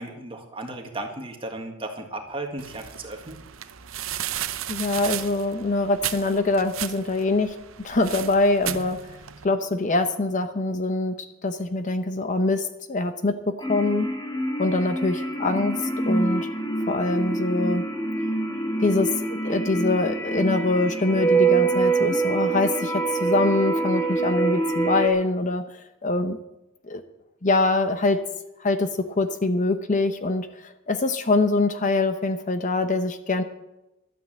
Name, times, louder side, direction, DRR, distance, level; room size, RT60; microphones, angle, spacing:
voice 1, 0.0-3.4, right 2 dB, 25° right, 3 dB, 1.7 m, -35 dB
sound 1, 2.6-9.5, right 11 dB, 80° right, 0.7 m, -35 dB
voice 2, 4.7-7.6 7.8-9.0 9.4-14.1 14.6-15.8 16.1-16.5 16.9-17.9 18.8-25.8 26.0-26.4 26.9-27.0 27.4-28.2 28.6-30.6 30.9-33.4, left 2 dB, 40° left, 9 dB, 0.8 m, -24 dB
sound 2, 13.6-25.1, right 3 dB, 20° left, 1.5 m, -25 dB
12.0 x 9.5 x 7.5 m, 0.96 s
head